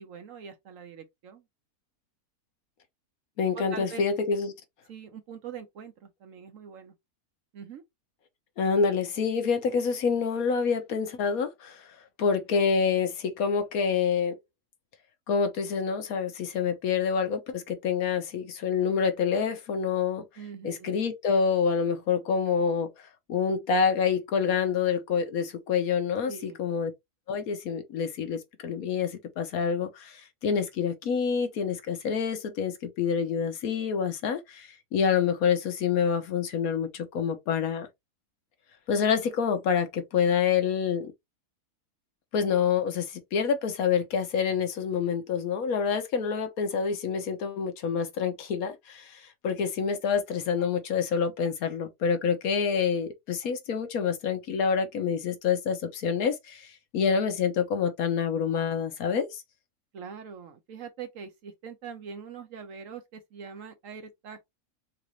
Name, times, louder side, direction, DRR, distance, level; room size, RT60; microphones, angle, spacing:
voice 1, 0.0-1.4 3.5-4.0 4.9-6.9 7.5-7.8 20.4-20.9 26.2-26.6 59.9-64.4, right 6 dB, 60° right, 1.1 m, -43 dB
voice 2, 3.4-4.5 8.6-11.9 12.2-14.3 15.3-20.2 20.6-26.9 27.3-37.9 38.9-41.1 42.3-59.4, left 6 dB, 70° left, 1.2 m, -27 dB
4.0 x 2.5 x 2.9 m
omnidirectional pair, 1.6 m